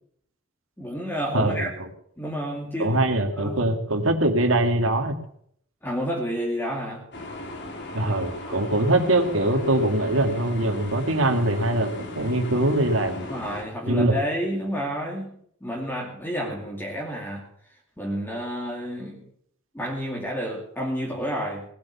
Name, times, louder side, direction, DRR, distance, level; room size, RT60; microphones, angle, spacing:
voice 1, 0.8-1.7 2.2-3.0 3.4-3.7 5.8-7.0 13.3-15.3 15.6-17.5 18.0-19.2 19.7-21.6, equal, 10° left, -2 dB, 2.5 m, -30 dB
voice 2, 1.3-1.9 2.8-5.2 7.9-13.3 13.9-14.1, right 1 dB, 80° right, 6 dB, 2.1 m, -23 dB
sound 1, 7.1-13.6, left 1 dB, 60° left, 2.7 m, -37 dB
18.5 x 8.5 x 6.9 m, 0.67 s
head